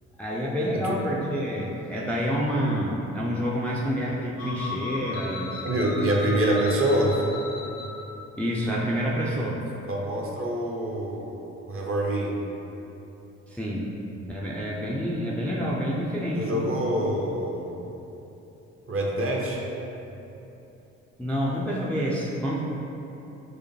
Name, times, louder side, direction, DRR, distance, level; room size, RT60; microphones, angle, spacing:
voice 1, 0.2-5.6 8.4-9.6 13.5-13.9 14.3-16.7 21.2-22.6, equal, 5° left, -5 dB, 0.4 m, -28 dB
sound 1, 4.4-8.1, left 3 dB, 80° left, 0.7 m, -36 dB
voice 2, 5.6-7.2 9.9-11.4 11.7-12.4 16.3-17.8 18.9-19.6, right 1 dB, 35° right, -2 dB, 0.8 m, -25 dB
4.9 x 2.1 x 3.1 m, 3.0 s
hypercardioid pair, 50°, 37 cm